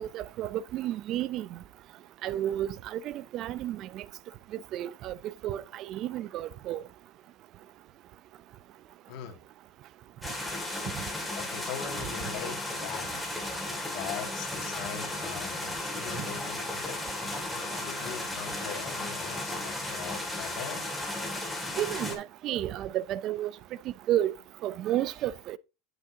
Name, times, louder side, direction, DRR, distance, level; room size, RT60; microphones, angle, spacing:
voice 1, 0.0-1.6 2.2-4.0 4.7-6.8 21.8-23.5 24.1-24.3 24.6-25.6, right 12 dB, 45° right, 0.4 m, -32 dB
voice 2, 9.1-9.4 11.3-13.1 13.9-17.0 17.8-20.8, left 9 dB, 55° left, 2.1 m, -41 dB
sound 1, 10.2-22.2, left 1 dB, ahead, 2.1 m, -35 dB
8.3 x 7.6 x 2.7 m
supercardioid pair, 125°, 0 cm